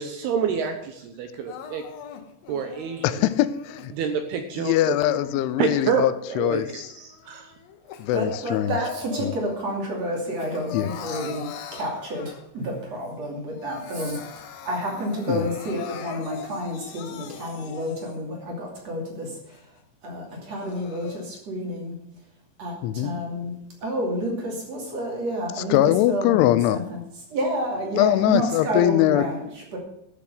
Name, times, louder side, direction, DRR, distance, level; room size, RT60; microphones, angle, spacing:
voice 1, 0.0-1.8 2.5-3.2 3.9-5.2 5.6-7.5, right 6 dB, 75° right, 6 dB, 2.6 m, -28 dB
Crying sobbing, 1.5-3.9 4.5-6.3 6.8-9.7 10.0-12.7 13.1-13.2 13.5-18.3 18.8-18.9 19.5-19.6 20.3-21.2, left 9 dB, 70° left, 2.3 m, -41 dB
voice 2, 3.0-3.9 4.6-6.9 8.0-8.8 9.2-9.3 10.7-10.9 15.3-15.5 22.8-23.1 25.7-26.8 28.0-29.2, left 13 dB, 90° left, 15 dB, 3.1 m, -22 dB
voice 3, 8.1-19.6 20.0-22.0 22.6-23.5 23.8-25.8 26.1-27.0 27.3-29.8, equal, 40° right, 0 dB, 3.2 m, -30 dB
13.0 x 6.8 x 6.7 m, 0.78 s
omnidirectional pair, 5.4 m